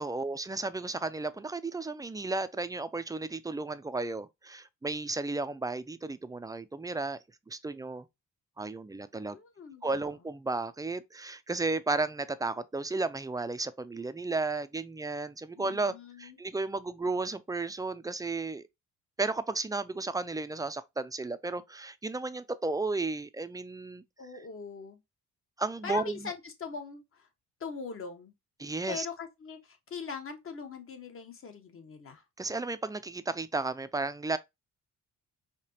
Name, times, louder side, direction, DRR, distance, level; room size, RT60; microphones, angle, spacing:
voice 1, 0.0-7.2 7.5-8.1 8.6-9.4 9.8-18.7 19.2-24.0 25.6-26.3 28.6-29.1 32.4-34.4, right 3 dB, 10° right, 0.4 m, -33 dB
voice 2, 9.3-9.9 15.6-16.4 24.2-25.0 25.8-27.3 27.6-28.3 28.9-32.2, left 5 dB, 45° left, 1.2 m, -41 dB
5.0 x 2.8 x 2.7 m
cardioid pair, 90°, 30 cm